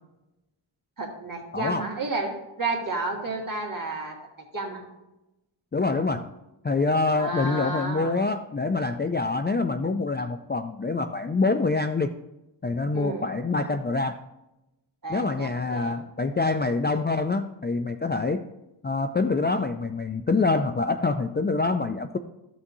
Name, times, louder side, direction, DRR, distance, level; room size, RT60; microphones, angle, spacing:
voice 1, 1.0-4.1 4.5-4.8 7.1-8.2 12.9-13.3 15.0-16.0, right 3 dB, 45° right, 0 dB, 2.0 m, -31 dB
voice 2, 1.5-1.9 5.7-6.3 6.6-12.1 12.6-14.2 15.1-18.4 18.8-22.2, left 3 dB, 25° left, 7 dB, 0.3 m, -25 dB
14.0 x 6.0 x 2.7 m, 0.96 s
wide cardioid pair, 75°, 48 cm